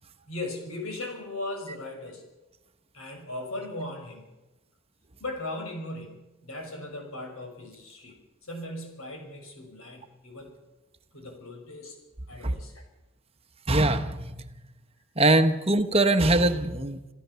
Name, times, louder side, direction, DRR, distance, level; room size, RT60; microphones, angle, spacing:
voice 1, 0.3-2.2 2.9-4.3 5.2-8.2 8.4-10.5 11.1-12.0 12.3-12.8, left 2 dB, 85° left, 4 dB, 6.2 m, -38 dB
voice 2, 13.7-14.2 15.2-17.0, right 2 dB, 30° right, 9 dB, 1.2 m, -22 dB
27.5 x 14.5 x 7.1 m, 1.0 s
head